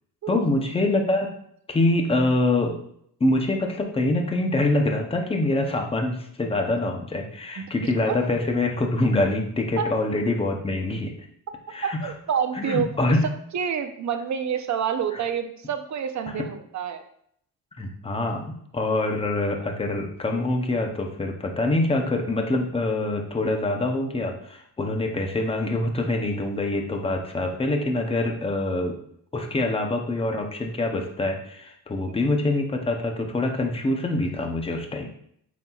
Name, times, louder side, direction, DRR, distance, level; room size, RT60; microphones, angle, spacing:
voice 1, 0.3-1.3 1.7-2.8 3.2-11.1 11.7-12.1 12.5-13.3 16.3-16.5 17.8-29.0 29.3-35.1, left 2 dB, 15° left, 3 dB, 0.7 m, -25 dB
voice 2, 11.8-12.9 13.5-17.0 32.1-32.2, right 7 dB, 50° right, 7 dB, 0.7 m, -28 dB
8.3 x 5.6 x 2.4 m, 0.68 s
wide cardioid pair, 175°, 36 cm